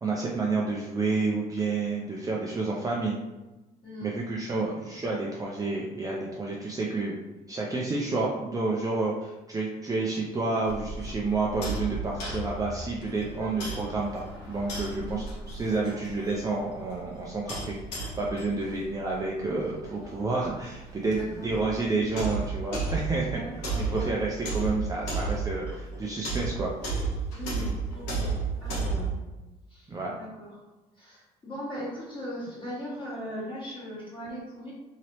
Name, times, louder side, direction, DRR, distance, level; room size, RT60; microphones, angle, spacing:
voice 1, 0.0-3.2 4.0-7.2 7.5-23.4 23.9-26.7 29.9-30.1, right 3 dB, 20° right, -3 dB, 0.4 m, -30 dB
voice 2, 3.8-4.2 14.9-15.2 21.1-21.5 23.3-24.1 27.3-28.3 28.6-29.1 29.7-30.5 31.0-34.7, equal, 30° left, -8 dB, 1.4 m, -39 dB
sound 1, 10.7-29.1, right 3 dB, 90° left, 1.2 m, -34 dB
3.0 x 2.8 x 2.9 m, 1.1 s
cardioid pair, 110°, 17 cm